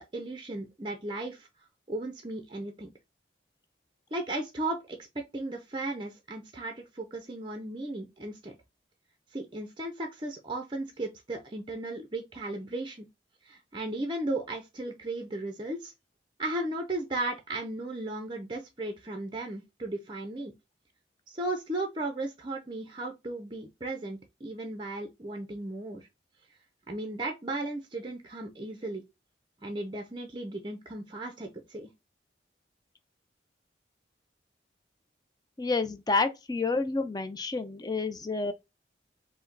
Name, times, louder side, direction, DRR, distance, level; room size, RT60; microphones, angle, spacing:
voice 1, 0.0-1.5 1.9-2.9 4.1-5.0 5.3-8.6 9.3-13.1 13.5-15.9 16.4-20.5 21.3-26.1 26.9-29.0 29.6-31.9, right 2 dB, 25° right, 0.6 m, -35 dB
voice 2, 35.6-38.5, left 3 dB, 20° left, 0.5 m, -29 dB
5.4 x 2.1 x 3.9 m
head